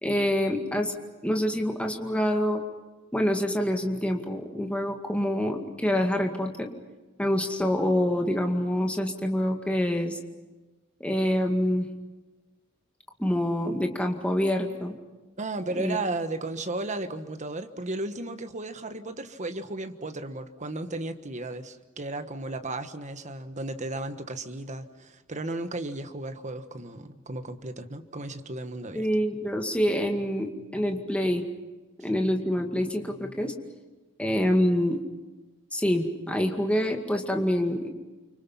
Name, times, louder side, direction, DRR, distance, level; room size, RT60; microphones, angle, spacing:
voice 1, 0.0-0.9 1.2-2.6 3.1-6.7 7.2-10.2 11.0-11.9 13.2-14.9 15.8-16.0 29.0-31.4 32.0-33.5 34.2-35.0 35.7-37.9, equal, 5° left, 2 dB, 2.1 m, -26 dB
voice 2, 15.4-29.1, right 2 dB, 35° right, 8 dB, 1.4 m, -34 dB
30.0 x 25.0 x 5.7 m, 1.2 s
head